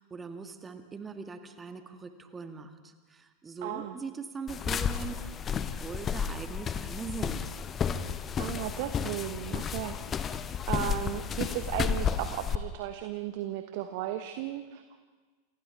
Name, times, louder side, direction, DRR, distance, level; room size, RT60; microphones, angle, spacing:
voice 1, 0.0-7.6, right 5 dB, 15° right, 7 dB, 1.7 m, -41 dB
voice 2, 3.6-4.0 8.4-10.4 10.7-15.0, right 13 dB, 50° right, 9 dB, 1.1 m, -35 dB
sound 1, 4.5-12.6, left 7 dB, 25° left, 0.9 m, -32 dB
28.0 x 28.0 x 3.5 m, 1.4 s
figure-of-eight pair, 90°, 0 cm